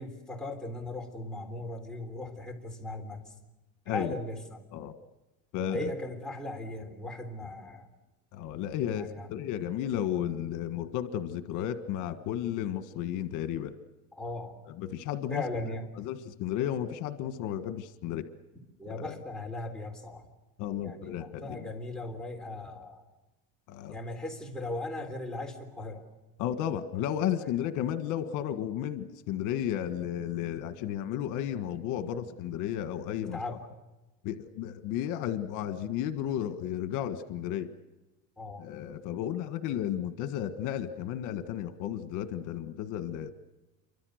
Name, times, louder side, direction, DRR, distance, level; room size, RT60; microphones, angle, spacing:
voice 1, 0.0-3.3 3.9-4.6 5.7-7.9 8.9-9.3 14.1-14.6 15.3-15.8 18.8-20.3 20.8-23.0 23.9-26.1 27.4-27.9 33.2-33.6 38.4-38.7, left 2 dB, ahead, 0 dB, 3.5 m, -38 dB
voice 2, 3.9-4.2 4.7-4.9 5.5-5.9 8.3-13.8 14.7-15.4 16.0-18.3 18.9-19.1 20.6-21.7 23.7-24.0 26.4-33.6 34.2-37.7 38.6-43.3, left 10 dB, 75° left, 10 dB, 1.6 m, -33 dB
28.0 x 24.5 x 6.5 m, 1.1 s
cardioid pair, 160°, 30 cm